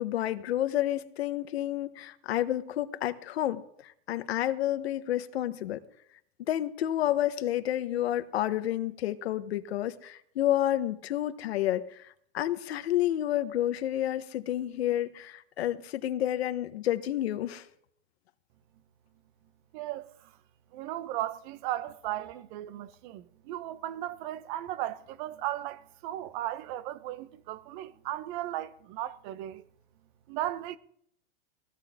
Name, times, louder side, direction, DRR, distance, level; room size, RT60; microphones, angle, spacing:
voice 1, 0.0-5.8 6.5-12.1 12.3-17.7, left 12 dB, 85° left, 1.3 m, -30 dB
voice 2, 19.7-20.2 20.7-29.6 30.3-30.8, right 13 dB, 50° right, 1.2 m, -36 dB
19.5 x 15.0 x 3.7 m
supercardioid pair, 140°, 31 cm